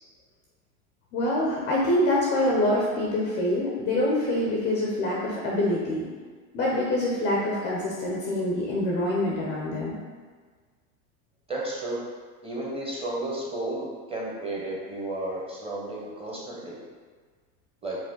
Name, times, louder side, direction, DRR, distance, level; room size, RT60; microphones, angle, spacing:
voice 1, 1.1-6.1 6.5-10.0, left 1 dB, 25° left, -4 dB, 0.5 m, -25 dB
voice 2, 11.5-12.0 12.4-16.8 17.8-18.0, right 2 dB, 10° right, -4 dB, 0.7 m, -33 dB
4.8 x 2.2 x 3.8 m, 1.5 s
hypercardioid pair, 110°, 50 cm